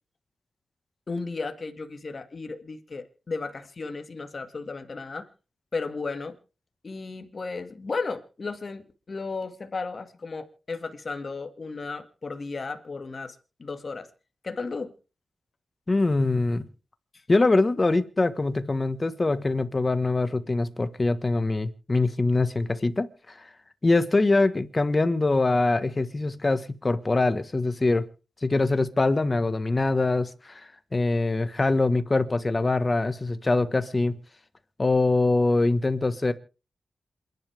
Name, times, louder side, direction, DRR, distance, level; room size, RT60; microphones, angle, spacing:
voice 1, 1.1-5.3 5.7-6.4 6.8-14.1 14.4-14.9, left 4 dB, 40° left, 2.1 m, -34 dB
voice 2, 15.9-16.6 17.3-23.1 23.8-28.1 28.4-30.6 30.9-34.2 34.8-36.3, left 2 dB, 25° left, 1.5 m, -23 dB
27.5 x 11.0 x 3.5 m
wide cardioid pair, 105°, 0 cm